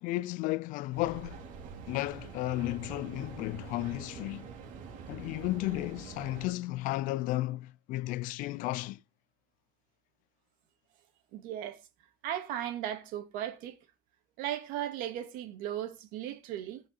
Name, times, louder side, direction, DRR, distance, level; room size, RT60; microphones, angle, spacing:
voice 1, 0.0-1.4 1.9-4.5 5.1-9.0, left 18 dB, 75° left, 0.6 m, -33 dB
Mechanical fan, 0.9-6.5, right 6 dB, 70° right, 3.1 m, -45 dB
voice 2, 11.3-11.8 12.2-13.8 14.4-16.8, right 11 dB, 85° right, 2.4 m, -36 dB
16.5 x 5.8 x 5.6 m
cardioid pair, 165°, 14 cm